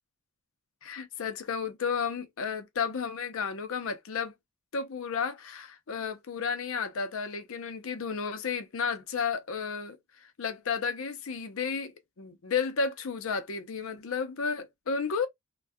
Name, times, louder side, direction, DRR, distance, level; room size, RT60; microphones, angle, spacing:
voice 1, 0.8-4.3 4.7-15.3, left 5 dB, 75° left, 0.6 m, -32 dB
3.4 x 2.2 x 2.6 m
head